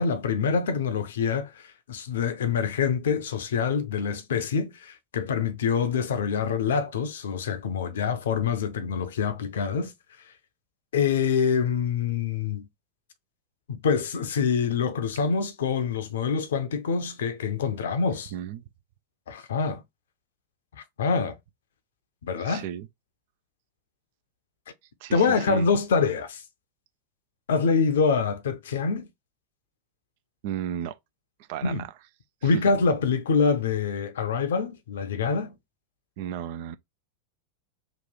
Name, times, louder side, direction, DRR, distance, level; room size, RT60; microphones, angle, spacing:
voice 1, 0.0-9.9 10.9-12.7 13.7-18.3 19.3-19.8 20.8-21.4 22.2-22.6 25.1-26.4 27.5-29.1 31.6-31.9 32.4-35.5, left 5 dB, 60° left, 0.6 m, -25 dB
voice 2, 18.3-18.6 22.4-22.9 25.0-25.7 30.4-31.0 31.5-31.9 32.4-32.6 36.2-36.8, right 10 dB, 50° right, 0.4 m, -34 dB
3.0 x 2.4 x 3.7 m
figure-of-eight pair, 90°, 0 cm